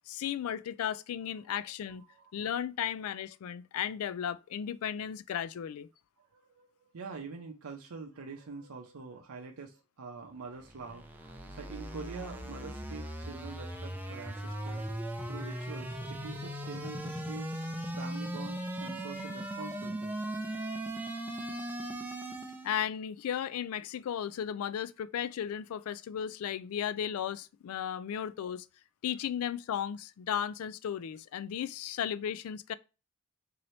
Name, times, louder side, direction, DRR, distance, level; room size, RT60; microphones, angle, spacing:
voice 1, 0.1-2.1 2.3-5.9 22.6-28.7 29.0-32.7, left 9 dB, 75° left, 0.3 m, -35 dB
voice 2, 1.9-2.5 6.2-14.8 15.3-17.7 18.0-20.2 21.0-21.4, right 4 dB, 80° right, 0.6 m, -45 dB
sound 1, 10.6-22.8, right 1 dB, 10° right, 0.5 m, -38 dB
3.9 x 2.8 x 3.1 m
head